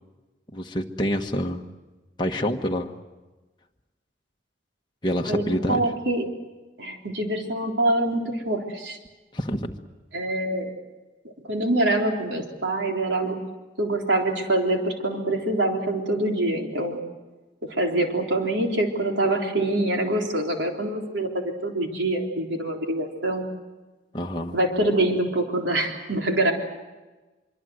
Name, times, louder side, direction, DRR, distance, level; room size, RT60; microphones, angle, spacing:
voice 1, 0.5-1.7 2.2-3.0 5.0-5.8 9.3-9.7 24.1-24.6, equal, 25° left, 1 dB, 1.3 m, -27 dB
voice 2, 5.2-6.3 6.8-9.0 10.1-10.7 11.2-13.4 13.8-17.0 17.7-23.5 24.5-26.5, right 1 dB, 80° right, 2 dB, 3.8 m, -25 dB
24.5 x 24.0 x 7.9 m, 1.2 s
head